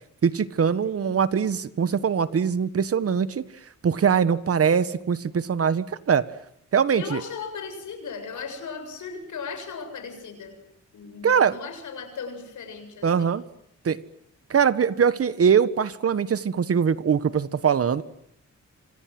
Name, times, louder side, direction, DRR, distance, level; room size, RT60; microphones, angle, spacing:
voice 1, 0.2-3.4 3.8-6.2 6.7-7.2 11.2-11.5 13.0-13.4 13.8-14.0 14.5-18.0, right 7 dB, 50° right, 14 dB, 1.5 m, -22 dB
voice 2, 0.8-1.3 6.9-10.6 10.9-13.3, left 5 dB, 80° left, 6 dB, 7.6 m, -37 dB
27.5 x 26.5 x 7.9 m, 0.71 s
wide cardioid pair, 125°, 29 cm